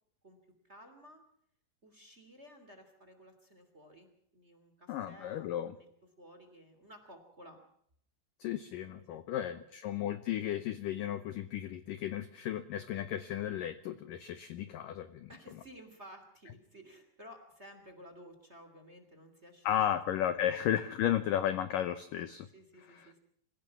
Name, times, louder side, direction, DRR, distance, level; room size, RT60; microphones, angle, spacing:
voice 1, 0.6-1.2 1.8-5.9 6.2-7.6 8.7-9.5 15.3-20.6 22.4-23.2, equal, 20° right, 7 dB, 2.5 m, -55 dB
voice 2, 4.9-5.7 8.4-15.3 19.7-22.5, left 11 dB, 80° left, 11 dB, 1.9 m, -34 dB
27.0 x 16.5 x 6.0 m, 0.66 s
omnidirectional pair, 5.2 m